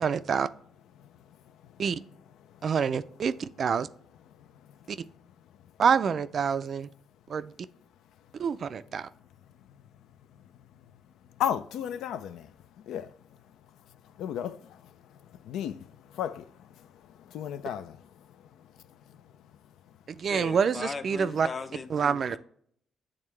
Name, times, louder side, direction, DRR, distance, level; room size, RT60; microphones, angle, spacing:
voice 1, 0.0-0.5 1.8-2.0 2.6-3.9 4.9-5.0 5.8-6.9 7.3-7.5 8.4-9.1 20.2-21.5 21.9-22.4, right 6 dB, 50° right, 0.3 m, -27 dB
voice 2, 11.4-12.4 12.9-13.1 14.2-14.6 15.5-15.7 16.2-16.4 17.3-17.9, left 10 dB, 85° left, 0.4 m, -32 dB
voice 3, 20.2-22.4, left 4 dB, 40° left, 0.6 m, -38 dB
8.7 x 3.6 x 3.2 m
cardioid pair, 90°, 0 cm